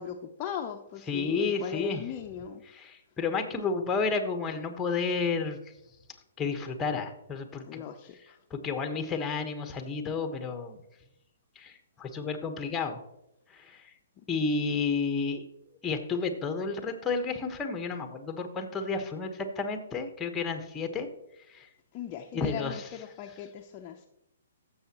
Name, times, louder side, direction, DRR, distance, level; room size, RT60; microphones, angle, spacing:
voice 1, 0.0-2.6 7.6-8.4 14.2-14.3 14.7-14.8 21.9-24.1, left 9 dB, 35° left, 3 dB, 0.7 m, -39 dB
voice 2, 1.1-2.0 2.7-5.6 6.4-7.8 8.5-10.8 11.5-13.0 13.5-13.9 14.3-15.4 15.8-21.1 21.5-21.7 22.3-22.8, left 4 dB, 15° left, 6 dB, 1.2 m, -31 dB
15.0 x 7.0 x 3.0 m, 0.84 s
hypercardioid pair, 130°, 0 cm